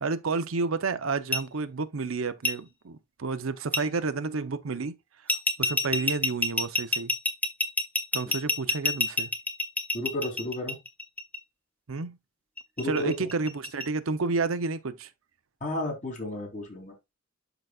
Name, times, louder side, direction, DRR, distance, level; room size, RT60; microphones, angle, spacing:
voice 1, 0.0-4.9 5.2-5.3 5.6-7.1 8.1-9.3 11.9-12.2 12.8-15.1, right 4 dB, 75° right, 0.7 m, -30 dB
sound 1, 1.3-1.4 2.4-2.5 3.7-3.8 5.3-11.4 12.6-13.8, left 2 dB, 10° left, 0.9 m, -27 dB
voice 2, 9.9-10.7 12.8-13.3 15.6-16.9, left 1 dB, 40° left, 3.1 m, -32 dB
12.0 x 4.0 x 2.4 m
head